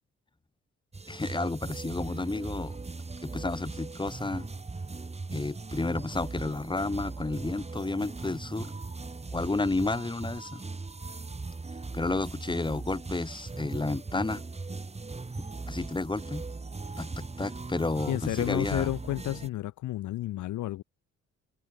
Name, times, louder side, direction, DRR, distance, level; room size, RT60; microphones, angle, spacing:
sound 1, 0.9-19.5, right 3 dB, 20° right, 2.8 m, -39 dB
voice 1, 1.1-2.8 3.2-4.5 5.3-8.7 9.3-10.6 11.9-14.4 15.7-16.4 17.0-18.9, left 3 dB, 15° left, 2.5 m, -31 dB
voice 2, 18.1-20.8, left 15 dB, 75° left, 0.9 m, -31 dB
cardioid pair, 90°, 30 cm